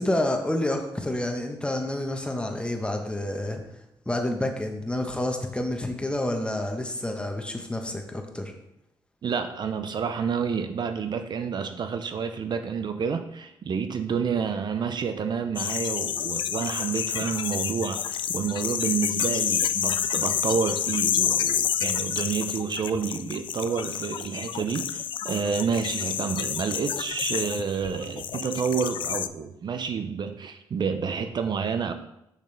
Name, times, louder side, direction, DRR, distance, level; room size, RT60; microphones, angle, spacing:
voice 1, 0.0-3.6 4.1-8.5, left 1 dB, 10° left, 3 dB, 1.2 m, -29 dB
voice 2, 9.2-31.9, right 6 dB, 55° right, 7 dB, 0.6 m, -29 dB
Radio Scanning Theremin Effect, 15.6-29.3, left 9 dB, 60° left, 0.3 m, -29 dB
6.4 x 6.1 x 3.4 m, 0.83 s
cardioid pair, 75°, 9 cm